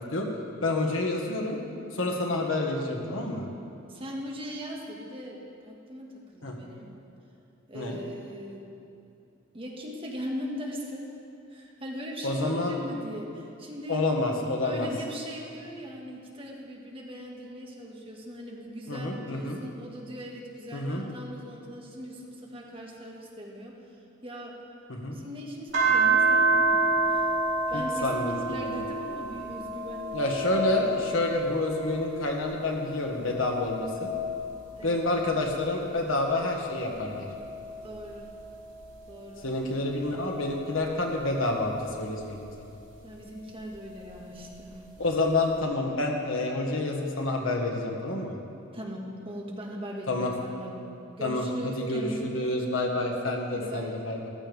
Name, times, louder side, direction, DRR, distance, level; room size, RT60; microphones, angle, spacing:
voice 1, 0.6-1.6 1.9-3.4 6.4-6.6 7.7-8.0 12.2-12.7 13.9-14.9 18.9-19.6 20.7-21.0 24.9-25.2 27.7-28.8 30.1-34.1 34.8-37.3 39.4-42.5 45.0-48.4 50.1-50.3 51.2-54.3, left 2 dB, 75° left, 1 dB, 1.6 m, -28 dB
voice 2, 3.9-5.4 5.6-6.9 7.7-8.7 9.5-11.0 11.5-14.0 14.6-23.7 24.2-24.6 25.1-27.3 27.7-30.3 34.7-35.0 37.8-38.3 39.1-39.4 43.0-44.8 48.7-50.7 51.2-52.7 53.5-54.0, equal, 30° right, -2 dB, 1.7 m, -39 dB
sound 1, 25.7-32.5 32.9-35.8 36.4-39.2 39.9-42.4 43.7-44.8, right 2 dB, 65° right, 3.3 m, -30 dB
14.5 x 13.5 x 3.5 m, 2.6 s
head